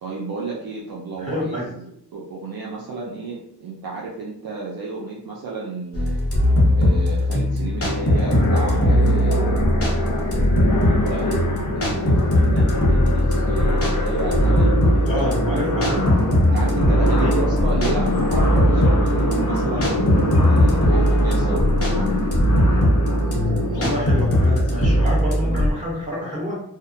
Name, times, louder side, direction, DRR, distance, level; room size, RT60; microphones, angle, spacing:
voice 1, 0.0-6.2 6.8-9.6 10.3-15.7 16.5-21.7, right 3 dB, 60° right, -3 dB, 0.5 m, -32 dB
voice 2, 1.2-1.7 15.0-16.0 17.2-17.4 23.7-26.6, equal, 20° right, -7 dB, 1.4 m, -27 dB
sound 1, 5.9-25.7, equal, 35° left, 0.9 m, -19 dB
sound 2, 7.8-25.1, left 2 dB, 50° left, 0.6 m, -26 dB
sound 3, 16.0-24.0, left 2 dB, 45° right, 0.9 m, -30 dB
2.4 x 2.1 x 2.6 m, 0.74 s
cardioid pair, 55°, 40 cm